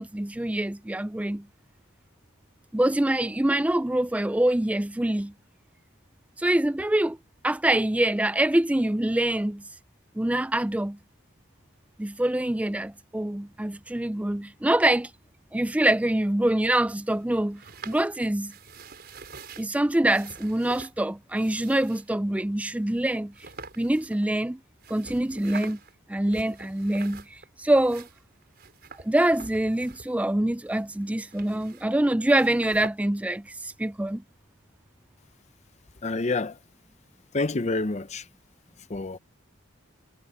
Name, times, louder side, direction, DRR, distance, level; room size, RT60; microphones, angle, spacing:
voice 1, 0.0-1.5 2.7-5.3 6.4-7.2 7.4-9.6 10.2-11.0 12.0-15.1 15.5-18.5 19.6-23.3 23.8-24.6 24.9-25.8 26.1-28.1 29.0-34.2, right 1 dB, 5° right, 0.4 m, -25 dB
sound 1, 16.9-19.7 20.1-21.0 21.3-22.1 22.8-22.9 23.3-24.5 24.8-25.9 26.2-27.5 27.7-30.3 30.6-32.0 32.2-32.9, right 4 dB, 50° right, 5.4 m, -46 dB
voice 2, 36.0-36.6 37.3-38.3 38.8-39.2, left 3 dB, 35° left, 0.6 m, -28 dB
head